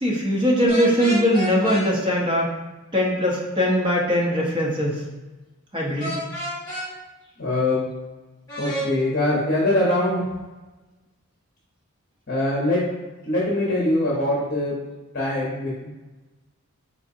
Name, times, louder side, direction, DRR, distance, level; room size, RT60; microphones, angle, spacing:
voice 1, 0.0-2.5 2.9-5.0 5.7-6.2, equal, 20° right, -4 dB, 0.8 m, -21 dB
sound 1, 0.7-1.8 6.0-6.9 8.5-8.9, right 1 dB, 20° left, 1.4 m, -30 dB
voice 2, 7.4-7.9 8.6-10.2 12.3-12.8 13.2-14.8 15.1-15.9, left 1 dB, 45° left, -6 dB, 0.9 m, -22 dB
4.0 x 3.7 x 2.6 m, 1.1 s
head